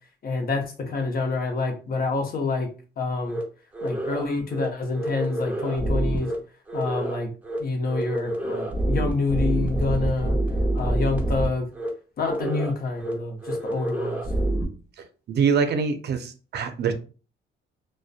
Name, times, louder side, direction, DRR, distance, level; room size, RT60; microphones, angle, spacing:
voice 1, 0.2-2.7 3.0-3.4 3.8-6.3 6.7-7.3 7.6-10.4 10.7-11.7 12.2-14.2, left 3 dB, 50° left, 4 dB, 0.7 m, -27 dB
sound 1, 3.3-3.4 3.7-4.2 4.5-4.7 4.9-6.4 6.7-7.2 7.4-7.6 7.9-11.5 11.7-11.9 12.2-12.7 13.0-13.1 13.4-14.7, right 1 dB, 5° right, 0.8 m, -27 dB
voice 2, 15.3-16.9, right 6 dB, 55° right, 8 dB, 0.5 m, -24 dB
2.4 x 2.1 x 2.4 m, 0.36 s
cardioid pair, 90°, 20 cm